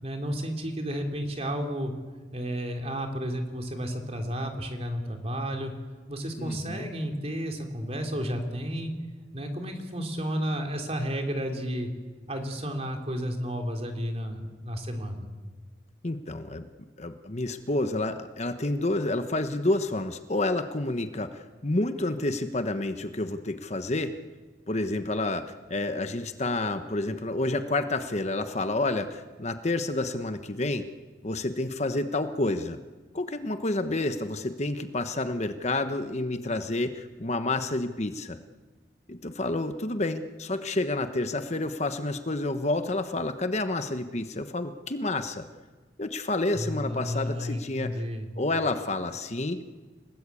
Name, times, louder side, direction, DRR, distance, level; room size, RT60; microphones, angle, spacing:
voice 1, 0.0-1.9 2.3-5.7 6.1-8.9 9.3-11.9 12.3-15.3 46.5-48.3, equal, 35° right, 4 dB, 3.5 m, -32 dB
voice 2, 6.4-6.9 16.0-16.7 17.0-24.1 24.7-30.9 31.2-32.8 33.1-38.4 39.1-45.5 46.0-48.0 48.4-49.6, left 2 dB, 40° left, 9 dB, 1.1 m, -29 dB
30.0 x 18.5 x 8.5 m, 1.4 s
head